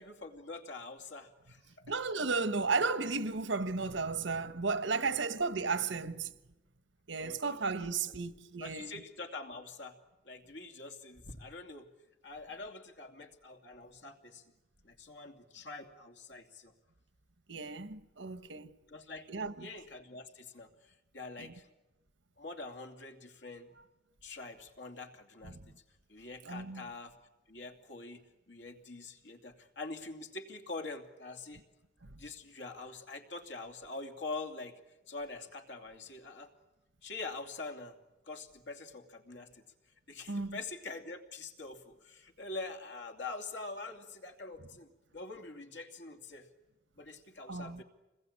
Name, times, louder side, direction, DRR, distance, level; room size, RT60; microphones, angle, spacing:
voice 1, 0.0-1.8 4.9-5.1 7.2-7.7 8.6-10.0 10.2-11.9 12.2-14.4 14.8-16.7 18.9-20.7 21.1-21.7 22.4-23.7 24.2-25.7 26.1-27.2 27.5-31.6 32.1-34.8 35.1-36.5 37.0-38.0 38.3-39.6 40.1-46.5 47.0-47.8, left 3 dB, 70° left, 2.8 m, -45 dB
voice 2, 1.8-6.3 7.1-9.0 17.5-18.7 19.3-19.7 21.4-21.5 25.4-25.7 26.4-26.9 32.0-32.2 40.3-40.6 47.5-47.8, right 4 dB, 75° right, 1.2 m, -34 dB
27.0 x 21.0 x 8.8 m
head